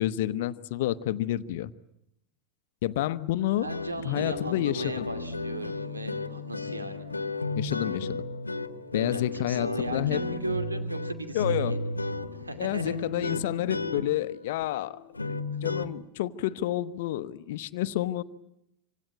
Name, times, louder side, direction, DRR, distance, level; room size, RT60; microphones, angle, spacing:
voice 1, 0.0-1.7 2.8-3.7 4.0-5.1 7.6-8.2 8.9-10.2 11.3-11.8 12.6-15.3 15.6-18.2, left 13 dB, 60° left, 15 dB, 1.0 m, -29 dB
sound 1, 3.6-15.9, left 2 dB, 90° left, 1.3 m, -33 dB
voice 2, 3.6-7.1 9.1-11.8 12.3-13.1, right 2 dB, 90° right, 9 dB, 2.5 m, -37 dB
26.5 x 25.5 x 8.7 m, 0.82 s
figure-of-eight pair, 85°, 0 cm